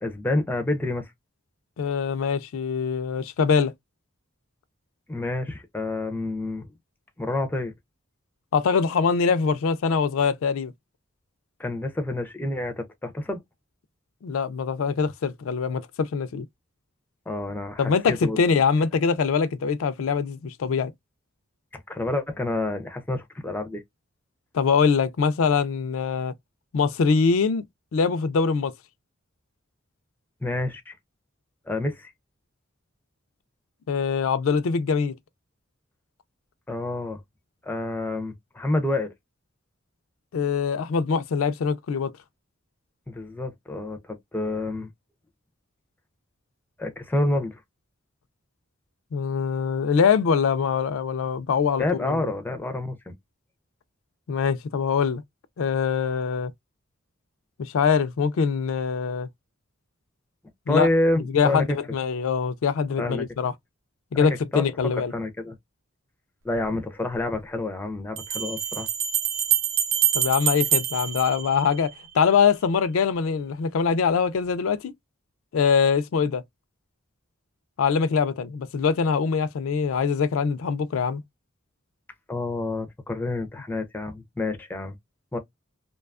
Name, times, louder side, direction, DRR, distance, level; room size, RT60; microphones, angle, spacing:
voice 1, 0.0-1.1 5.1-6.7 7.2-7.7 11.6-13.4 17.3-18.4 21.7-23.8 30.4-30.9 31.7-32.1 36.7-37.2 37.6-39.1 43.1-44.9 46.8-47.6 51.8-53.1 60.7-61.6 63.0-63.3 64.1-64.3 64.5-64.6 65.1-65.6 66.4-68.9 82.3-85.0 85.3-85.4, left 2 dB, 10° left, 0.4 m, -28 dB
voice 2, 1.8-3.7 8.5-10.7 14.2-16.4 17.8-20.9 24.5-26.3 26.7-27.6 27.9-28.7 33.9-35.1 40.3-42.1 49.1-52.3 54.3-55.2 55.6-56.5 57.6-59.3 60.7-60.9 61.3-63.5 64.1-65.1 70.1-74.9 75.5-76.4 77.8-81.2, left 6 dB, 80° left, 0.4 m, -23 dB
Bell, 66.5-66.6 68.2-72.1, right 10 dB, 65° right, 0.6 m, -26 dB
2.6 x 2.2 x 2.3 m
head